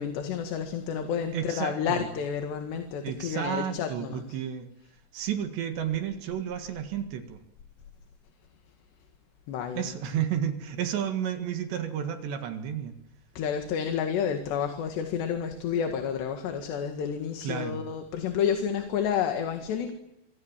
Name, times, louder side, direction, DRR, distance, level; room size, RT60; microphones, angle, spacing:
voice 1, 0.0-4.2 9.5-9.9 13.4-19.9, left 7 dB, 70° left, 5 dB, 4.0 m, -30 dB
voice 2, 1.3-2.1 3.0-4.7 5.1-7.4 9.8-12.9 17.4-17.8, right 9 dB, 70° right, 7 dB, 3.9 m, -32 dB
26.0 x 25.0 x 7.5 m, 0.88 s
omnidirectional pair, 5.3 m